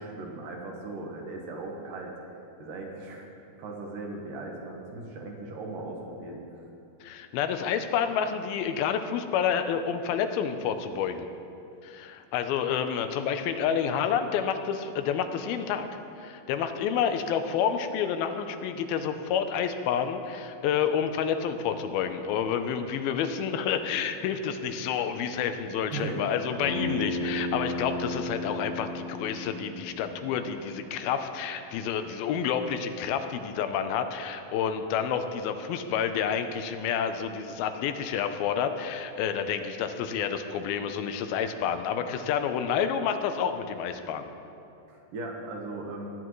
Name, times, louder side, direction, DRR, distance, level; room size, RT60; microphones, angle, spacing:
voice 1, 0.0-2.1 2.6-3.3 3.6-6.4 25.9-26.2 44.9-46.1, right 2 dB, 65° right, 0 dB, 2.8 m, -38 dB
voice 2, 7.0-11.3 11.8-15.9 16.2-44.3, left 7 dB, 85° left, 8 dB, 2.5 m, -29 dB
Bass guitar, 26.6-30.9, left 1 dB, 60° left, 3.7 m, -34 dB
20.0 x 10.5 x 3.1 m, 2.7 s
omnidirectional pair, 4.3 m